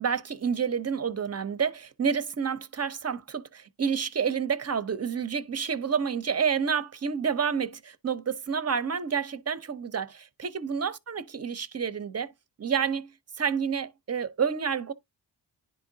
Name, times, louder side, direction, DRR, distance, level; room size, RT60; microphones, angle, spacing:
voice 1, 0.0-12.3 12.6-14.9, right 6 dB, 35° right, 0.6 m, -29 dB
10.0 x 3.7 x 2.7 m
cardioid pair, 55°, 43 cm